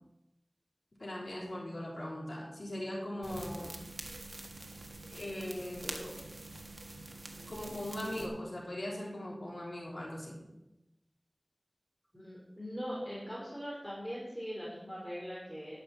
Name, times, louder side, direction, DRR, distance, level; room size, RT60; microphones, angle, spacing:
voice 1, 1.0-3.8 5.1-6.1 7.5-10.4, left 1 dB, 70° left, -5 dB, 3.7 m, -40 dB
sound 1, 3.2-8.3, right 2 dB, 65° right, 1.5 m, -45 dB
voice 2, 12.1-15.8, equal, ahead, -6 dB, 3.6 m, -41 dB
11.0 x 6.0 x 7.7 m, 0.97 s
wide cardioid pair, 50°, 0 cm